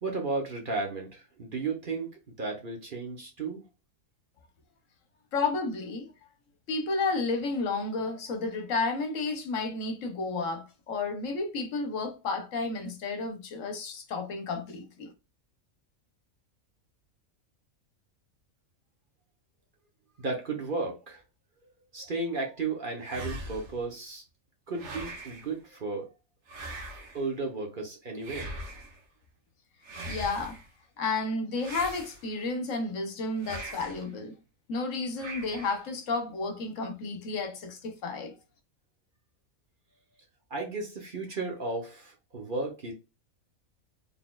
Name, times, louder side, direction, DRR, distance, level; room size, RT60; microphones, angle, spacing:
voice 1, 0.0-2.1 2.4-3.6 20.2-21.2 21.9-24.2 24.7-26.1 27.1-28.5 40.5-42.9, right 3 dB, 45° right, 1.0 m, -34 dB
voice 2, 5.3-6.1 6.7-15.1 30.1-30.6 31.0-34.3 34.7-38.3, left 3 dB, 70° left, 1.2 m, -32 dB
sound 1, 23.0-23.8 24.7-25.5 26.5-27.3 28.2-29.0 29.8-30.7 31.6-32.5 33.4-34.1 35.2-35.9, right 1 dB, 60° right, 1.3 m, -41 dB
4.0 x 3.5 x 2.3 m
omnidirectional pair, 1.4 m